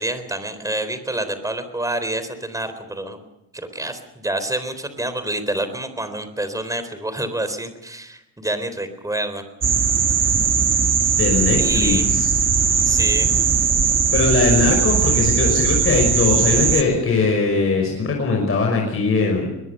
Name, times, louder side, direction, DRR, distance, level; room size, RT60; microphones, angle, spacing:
voice 1, 0.0-3.3 3.5-9.4 11.6-12.0 12.8-13.3, right 1 dB, 10° right, 10 dB, 3.9 m, -27 dB
sound 1, 9.6-16.8, right 6 dB, 35° right, 1.8 m, -19 dB
voice 2, 11.2-12.3 14.1-19.5, left 4 dB, 40° left, 1 dB, 5.7 m, -20 dB
22.0 x 22.0 x 6.7 m, 0.92 s
cardioid pair, 110°, 35 cm